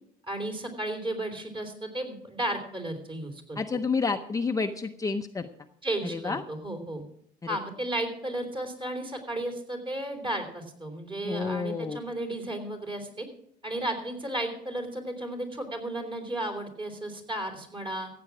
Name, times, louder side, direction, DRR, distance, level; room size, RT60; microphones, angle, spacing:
voice 1, 0.3-3.6 5.8-7.0 7.5-13.3 13.6-18.1, right 1 dB, 30° right, 3 dB, 3.5 m, -34 dB
voice 2, 3.6-5.5 6.0-6.4 7.4-7.6 11.2-12.0, left 4 dB, 20° left, 5 dB, 0.7 m, -29 dB
15.0 x 8.5 x 6.0 m, 0.71 s
cardioid pair, 110°, 17 cm